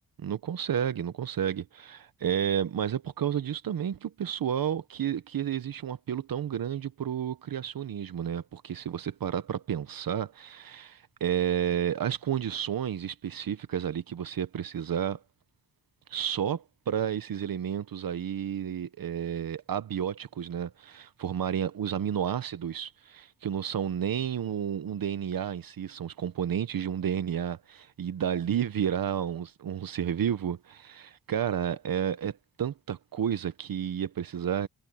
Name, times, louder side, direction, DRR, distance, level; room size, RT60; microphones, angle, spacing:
voice 1, 0.2-15.2 16.1-34.7, right 9 dB, 70° right, 0.9 m, -31 dB
wide cardioid pair, 110°, 37 cm